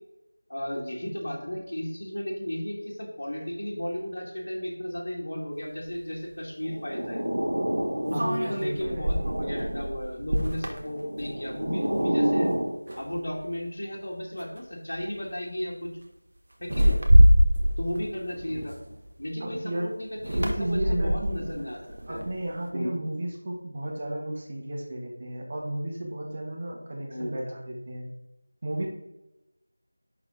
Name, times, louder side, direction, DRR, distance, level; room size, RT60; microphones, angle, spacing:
voice 1, 0.5-7.4 8.1-12.5 13.0-15.9 16.6-17.0 17.8-18.7 19.2-21.8 22.1-22.2 22.7-22.9 27.1-27.3, equal, 60° left, -3 dB, 2.4 m, -34 dB
sound 1, 5.9-6.0 8.1-11.8 12.1-12.4 12.9-13.5 14.4-14.6 14.9-15.2 16.6-19.2 20.2-22.6, equal, 60° right, 1.5 m, -24 dB
sound 2, 6.6-8.4 8.8-10.0 10.9-12.7, right 1 dB, 80° right, 2.4 m, -29 dB
voice 2, 8.1-9.4 19.4-19.9 20.3-21.5 22.1-28.1 28.6-28.9, right 1 dB, 30° right, -2 dB, 1.8 m, -33 dB
11.0 x 4.0 x 3.8 m, 0.94 s
figure-of-eight pair, 170°, 0 cm